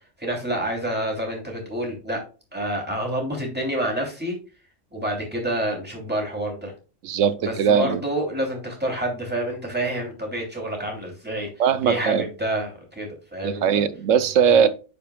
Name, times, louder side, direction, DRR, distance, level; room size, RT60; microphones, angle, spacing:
voice 1, 0.2-2.2 2.5-4.4 4.9-6.7 7.4-11.5 11.8-13.8 14.5-14.7, right 1 dB, 10° right, 2.9 m, -28 dB
voice 2, 7.0-8.0 11.6-12.3 13.4-14.7, right 7 dB, 75° right, 1.1 m, -20 dB
10.5 x 5.1 x 2.3 m
omnidirectional pair, 1.3 m